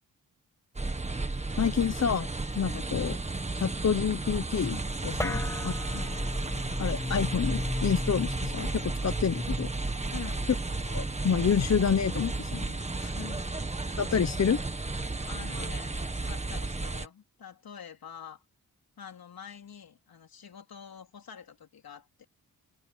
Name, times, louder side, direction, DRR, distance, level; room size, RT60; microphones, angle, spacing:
sound 1, 0.8-17.1, right 2 dB, 20° right, 1.6 m, -33 dB
voice 1, 1.6-2.3 2.5-3.1 3.6-5.4 5.6-5.7 6.8-9.7 10.9-13.1 14.0-14.6, left 7 dB, 45° left, 1.0 m, -28 dB
voice 2, 2.9-3.3 5.3-5.6 5.9-6.2 10.1-10.5 13.1-13.9 15.2-18.4 19.0-22.2, left 7 dB, 70° left, 4.0 m, -46 dB
sound 2, 5.2-11.9, left 2 dB, 10° left, 0.5 m, -37 dB
wide cardioid pair, 155°, 37 cm